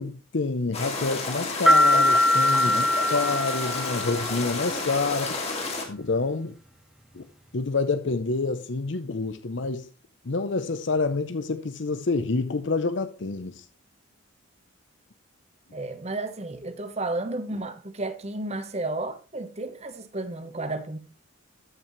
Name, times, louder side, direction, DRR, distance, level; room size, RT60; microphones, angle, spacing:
voice 1, 0.0-5.4 5.9-6.5 7.1-7.2 7.5-9.9 10.2-13.6, left 3 dB, 55° left, 0.6 m, -28 dB
sound 1, 0.7-5.8, left 3 dB, 30° left, 2.0 m, -31 dB
sound 2, 1.7-4.3, left 1 dB, 5° right, 1.5 m, -21 dB
voice 2, 15.7-21.0, right 2 dB, 30° right, 0.9 m, -32 dB
13.5 x 6.1 x 3.1 m
head